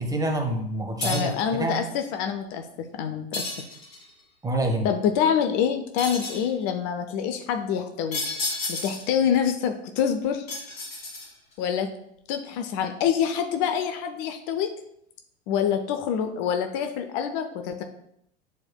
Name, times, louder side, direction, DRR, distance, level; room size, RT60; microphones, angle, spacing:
voice 1, 0.0-1.8 4.4-4.9, right 1 dB, 10° right, 3 dB, 1.0 m, -27 dB
sound 1, 1.0-1.5 3.3-4.1 6.0-6.5 8.1-9.2 10.5-11.5, left 2 dB, 65° left, 2.4 m, -32 dB
voice 2, 1.0-3.6 4.8-8.2 8.7-10.5 11.6-11.9 12.3-14.7 15.5-17.8, left 8 dB, 45° left, 6 dB, 0.7 m, -26 dB
9.5 x 4.3 x 2.3 m, 0.72 s
figure-of-eight pair, 85°, 33 cm